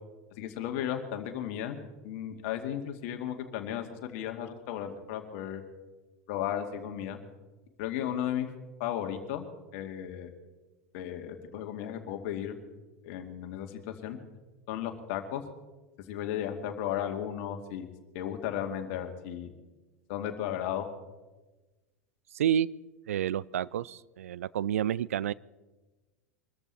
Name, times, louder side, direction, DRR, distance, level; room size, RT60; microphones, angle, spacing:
voice 1, 0.4-1.8 2.0-5.6 6.3-7.2 7.8-8.5 8.8-9.5 9.7-10.3 10.9-12.6 13.0-14.2 14.7-15.4 16.1-17.9 18.1-19.5 20.1-20.9, left 10 dB, 55° left, 5 dB, 2.2 m, -35 dB
voice 2, 22.3-22.7 23.1-25.3, right 10 dB, 70° right, 22 dB, 0.4 m, -29 dB
23.5 x 14.0 x 4.3 m, 1.2 s
figure-of-eight pair, 85°, 8 cm